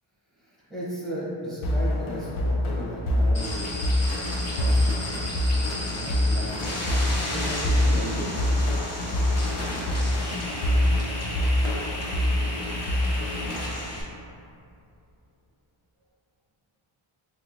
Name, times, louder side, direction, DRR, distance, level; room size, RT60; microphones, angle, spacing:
voice 1, 0.3-4.1 4.6-6.8 7.3-8.5, right 1 dB, ahead, -9 dB, 0.8 m, -36 dB
sound 1, 1.6-13.6, left 1 dB, 80° left, 0.5 m, -25 dB
sound 2, 3.3-14.0, left 1 dB, 30° left, 0.5 m, -34 dB
3.5 x 2.9 x 2.5 m, 2.6 s
wide cardioid pair, 145°, 50 cm